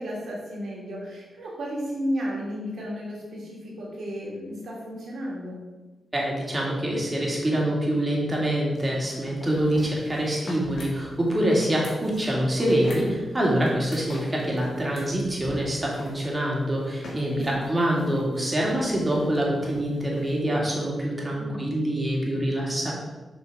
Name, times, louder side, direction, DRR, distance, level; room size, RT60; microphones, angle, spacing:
voice 1, 0.0-5.6 17.3-18.0 21.4-21.8, equal, 75° right, -4 dB, 2.4 m, -33 dB
voice 2, 6.1-22.9, right 1 dB, 25° right, -3 dB, 2.5 m, -25 dB
sound 1, 8.7-20.8, left 2 dB, 70° left, 1.6 m, -44 dB
6.7 x 4.5 x 5.1 m, 1.2 s
cardioid pair, 55°, 0 cm